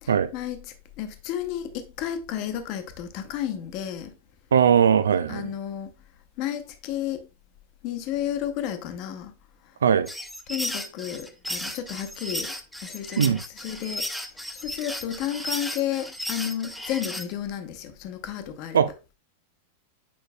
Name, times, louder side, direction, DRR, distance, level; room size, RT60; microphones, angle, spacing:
voice 1, 0.0-4.1 5.3-5.9 6.4-7.3 7.8-9.3 10.5-12.5 12.8-14.1 14.6-18.8, left 10 dB, 45° left, 1.0 m, -32 dB
voice 2, 4.5-5.5 9.8-10.1 13.2-13.4 18.7-18.9, right 7 dB, 70° right, 0.5 m, -19 dB
sound 1, 10.1-17.3, left 1 dB, ahead, 0.8 m, -34 dB
8.6 x 5.1 x 2.2 m
figure-of-eight pair, 90°, 0 cm